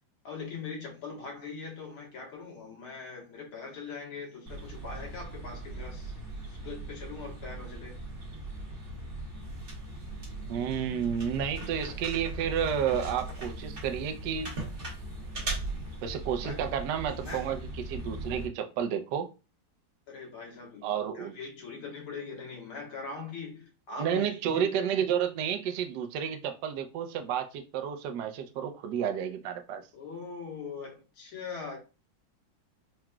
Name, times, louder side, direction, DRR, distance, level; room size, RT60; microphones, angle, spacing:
voice 1, 0.2-6.2 6.5-7.9 16.4-16.6 17.3-17.5 20.1-20.8 21.1-24.7 29.9-31.8, left 4 dB, 75° left, 2.2 m, -41 dB
sound 1, 4.5-18.5, right 2 dB, 35° right, 1.1 m, -39 dB
voice 2, 10.5-14.5 16.0-17.6 17.9-19.3 20.8-21.3 24.0-29.8, right 8 dB, 70° right, 1.0 m, -31 dB
4.8 x 3.0 x 2.3 m
omnidirectional pair, 2.3 m